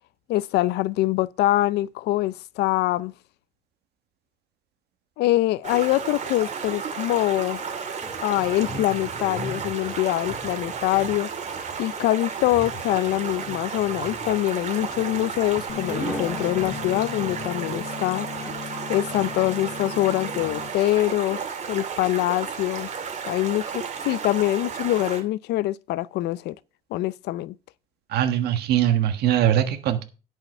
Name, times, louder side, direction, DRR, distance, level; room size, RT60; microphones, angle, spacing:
voice 1, 0.3-3.1 5.2-7.8 8.2-11.3 11.8-18.3 18.9-22.9 23.3-26.6 26.9-27.6, left 16 dB, 80° left, 0.5 m, -24 dB
Stream, 5.6-25.2, right 6 dB, 45° right, 2.4 m, -33 dB
sound 1, 8.0-20.7, equal, ahead, 2.6 m, -40 dB
sound 2, 15.7-20.7, left 8 dB, 40° left, 1.4 m, -37 dB
voice 2, 28.1-30.0, right 11 dB, 75° right, 1.4 m, -21 dB
11.0 x 5.8 x 5.3 m
cardioid pair, 110°, 17 cm